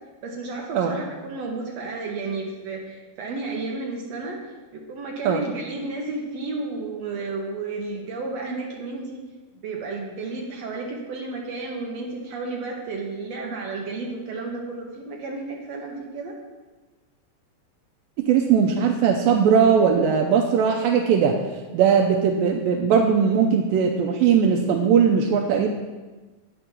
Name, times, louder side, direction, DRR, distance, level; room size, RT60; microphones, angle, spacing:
voice 1, 0.2-4.4 4.9-9.2 9.6-16.3, right 3 dB, 65° right, 0 dB, 1.7 m, -32 dB
voice 2, 18.2-21.4 21.7-25.7, right 7 dB, 85° right, 2 dB, 2.4 m, -19 dB
9.4 x 6.8 x 6.0 m, 1.2 s
omnidirectional pair, 4.2 m